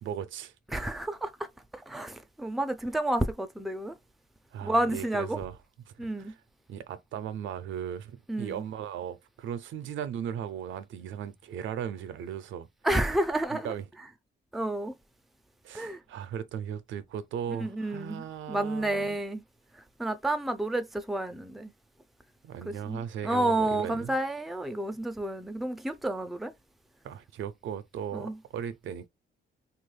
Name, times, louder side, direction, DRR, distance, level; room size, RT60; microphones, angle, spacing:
voice 1, 0.0-0.5 4.5-5.6 5.9-6.4 6.7-12.7 13.5-13.9 15.6-19.2 22.4-24.1 27.0-29.1, right 9 dB, 75° right, 0.5 m, -37 dB
voice 2, 0.7-1.3 1.7-3.9 4.6-5.4 6.0-6.3 8.3-8.6 12.8-13.7 14.5-14.9 15.7-16.0 17.6-19.4 20.0-21.7 22.7-26.5 28.1-28.4, right 1 dB, ahead, 0.4 m, -30 dB
2.9 x 2.3 x 3.2 m
cardioid pair, 90°, 20 cm